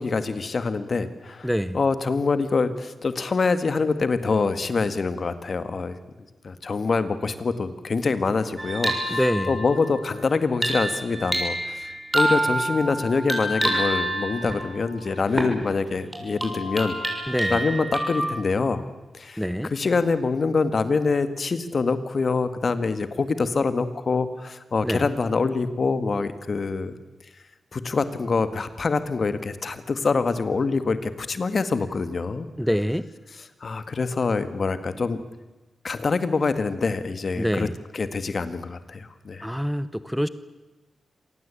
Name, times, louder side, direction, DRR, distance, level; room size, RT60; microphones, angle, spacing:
voice 1, 0.0-1.5 1.7-6.0 6.4-9.2 9.5-18.9 19.1-26.9 27.7-32.5 33.6-35.2 35.8-37.7 37.9-39.5, left 4 dB, 55° left, 12 dB, 2.0 m, -25 dB
voice 2, 1.4-1.8 9.1-9.6 17.3-17.6 19.4-19.7 24.8-25.0 32.6-33.1 37.4-37.8 39.4-40.3, equal, ahead, 14 dB, 1.2 m, -25 dB
sound 1, 8.6-15.6 16.1-18.2, right 1 dB, 20° right, 6.8 m, -28 dB
26.5 x 18.5 x 8.6 m, 1.1 s
cardioid pair, 50°, 0 cm